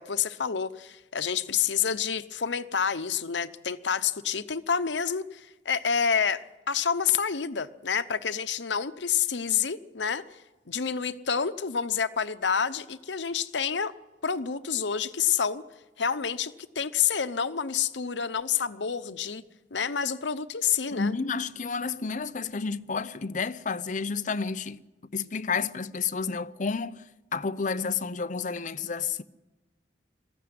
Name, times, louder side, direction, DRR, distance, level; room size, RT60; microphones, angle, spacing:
voice 1, 0.0-10.2 10.7-13.9 14.2-15.6 16.0-19.4 19.7-21.1, left 7 dB, 90° left, 0.9 m, -28 dB
voice 2, 20.9-24.8 25.1-27.0 27.3-29.2, left 5 dB, 45° left, 0.7 m, -30 dB
22.0 x 15.0 x 9.5 m
head